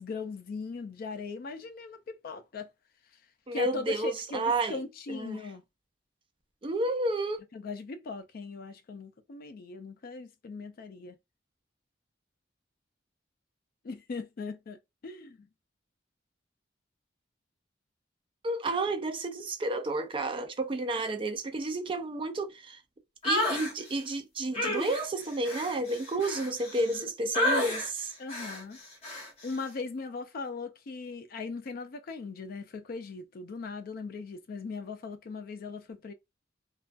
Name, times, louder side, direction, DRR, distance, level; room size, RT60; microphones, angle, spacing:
voice 1, 0.0-2.7 3.5-5.6 7.5-11.2 13.8-15.5 28.2-28.8 29.4-36.1, left 4 dB, 55° left, 0.4 m, -39 dB
voice 2, 3.5-4.8 5.1-5.4 6.6-7.4 18.4-22.8 23.2-28.1, right 2 dB, 30° right, 0.4 m, -31 dB
sound 1, 23.2-23.7 24.5-27.0 27.3-27.9 28.3-28.6 29.0-29.3, left 1 dB, 35° left, 1.1 m, -30 dB
2.3 x 2.3 x 2.4 m
head